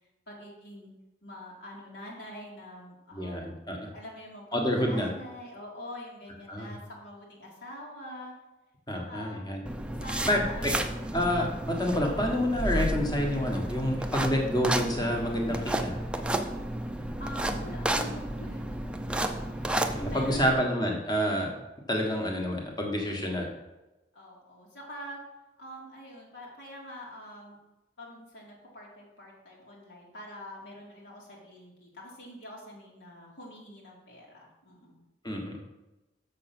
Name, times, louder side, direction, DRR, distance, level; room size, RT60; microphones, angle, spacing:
voice 1, 0.3-0.9 1.2-3.6 3.9-8.3 9.1-9.4 10.0-10.9 17.2-18.9 19.6-19.8 20.1-20.7 24.1-25.2 25.6-27.6 28.0-35.0, equal, 70° left, -4 dB, 2.1 m, -45 dB
voice 2, 3.1-3.9 4.5-5.1 6.5-6.7 8.9-9.6 10.3-10.7 11.1-16.0 19.9-21.5 21.9-23.5 35.2-35.6, equal, 20° left, 1 dB, 1.4 m, -28 dB
sound 1, 9.7-20.5, right 1 dB, 5° right, 0.5 m, -32 dB
6.8 x 6.5 x 6.0 m, 1.0 s
head